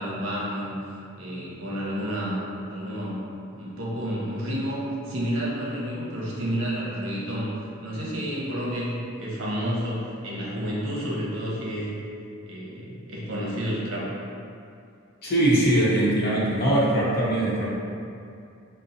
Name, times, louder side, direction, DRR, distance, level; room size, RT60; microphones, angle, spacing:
voice 1, 0.0-2.4 2.7-3.2 3.5-7.5 7.8-11.9 12.5-14.1, equal, 65° right, -5 dB, 0.8 m, -30 dB
voice 2, 15.2-17.7, right 1 dB, 50° left, -7 dB, 0.8 m, -21 dB
5.3 x 2.1 x 2.6 m, 2.5 s
head